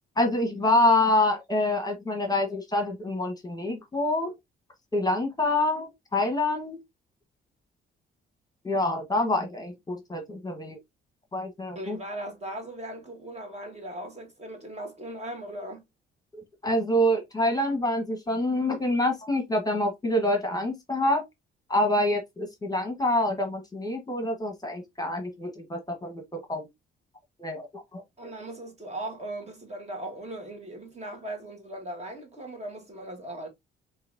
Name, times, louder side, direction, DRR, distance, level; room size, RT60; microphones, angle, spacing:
voice 1, 0.2-4.3 4.9-6.8 8.6-10.8 11.3-12.0 16.3-21.2 21.7-26.7 27.4-28.0, left 1 dB, 20° left, 1.2 m, -26 dB
voice 2, 11.7-15.8 28.2-33.5, right 1 dB, 35° right, 1.6 m, -38 dB
5.6 x 2.8 x 2.6 m
cardioid pair, 90°, 20 cm